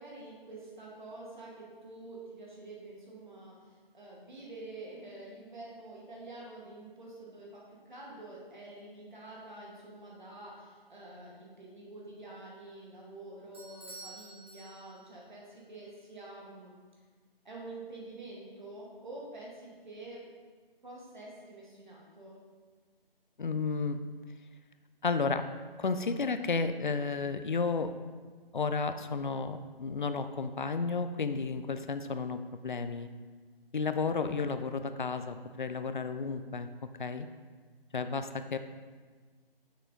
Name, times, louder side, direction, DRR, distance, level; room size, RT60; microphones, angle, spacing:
voice 1, 0.0-16.7 17.4-20.2 20.8-22.4, right 2 dB, 50° right, -4 dB, 1.8 m, -47 dB
Bell / Doorbell, 13.5-15.3, right 2 dB, 25° right, 1.0 m, -50 dB
voice 2, 23.4-24.0 25.0-25.4 25.8-27.9 28.5-33.1 33.7-36.7 37.0-37.3 37.9-38.6, left 4 dB, 55° left, 10 dB, 0.4 m, -32 dB
6.8 x 4.6 x 3.7 m, 1.5 s
figure-of-eight pair, 170°, 29 cm